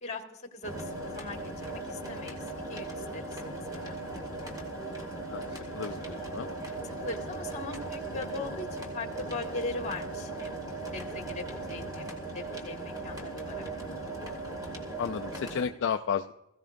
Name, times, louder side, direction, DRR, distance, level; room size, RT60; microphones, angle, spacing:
voice 1, 0.0-2.4 2.7-4.0 6.8-10.6 10.9-13.7, left 3 dB, 30° left, 3 dB, 1.7 m, -40 dB
sound 1, 0.6-15.6, right 2 dB, 15° right, 2.2 m, -38 dB
voice 2, 5.7-6.5 15.0-16.3, left 7 dB, 55° left, 6 dB, 0.4 m, -32 dB
21.0 x 15.5 x 2.5 m, 0.95 s
head